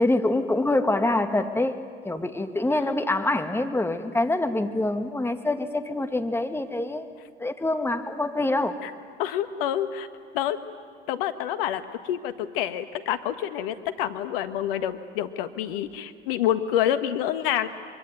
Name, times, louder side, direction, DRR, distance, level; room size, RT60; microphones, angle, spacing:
voice 1, 0.0-7.1 7.4-8.9, left 2 dB, 10° left, 7 dB, 2.0 m, -25 dB
voice 2, 9.2-10.1 10.3-10.6 11.1-17.7, left 10 dB, 70° left, 10 dB, 1.6 m, -27 dB
24.5 x 24.0 x 9.3 m, 2.1 s
hypercardioid pair, 75°, 29 cm